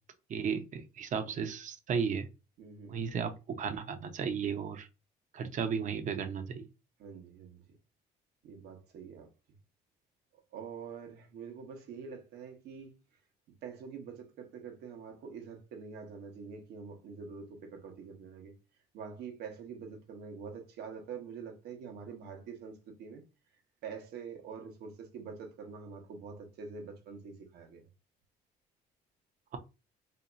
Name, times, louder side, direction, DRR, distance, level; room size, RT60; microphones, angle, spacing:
voice 1, 0.3-2.3 2.9-4.9 5.3-6.7, right 6 dB, 50° right, 0.6 m, -34 dB
voice 2, 2.6-3.0 7.0-7.8 8.4-9.3 10.3-12.9 13.6-18.5 18.9-23.2 23.8-27.9, right 5 dB, 75° right, 1.0 m, -45 dB
2.8 x 2.2 x 3.9 m
cardioid pair, 110°, 17 cm